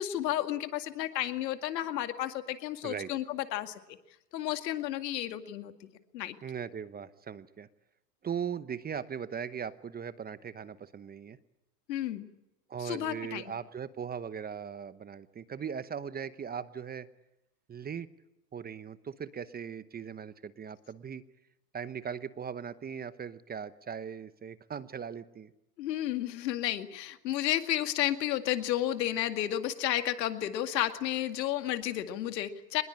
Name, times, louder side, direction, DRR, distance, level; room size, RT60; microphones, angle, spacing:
voice 1, 0.0-3.8 4.3-5.9 6.1-6.4 11.9-12.3 12.8-13.4 25.8-32.8, left 12 dB, 75° left, 8 dB, 2.3 m, -32 dB
voice 2, 6.4-7.7 8.2-11.4 12.7-17.1 17.7-18.1 18.5-21.2 21.7-25.5, right 7 dB, 20° right, 14 dB, 0.9 m, -39 dB
25.0 x 20.5 x 8.8 m, 0.92 s
hypercardioid pair, 110°, 50 cm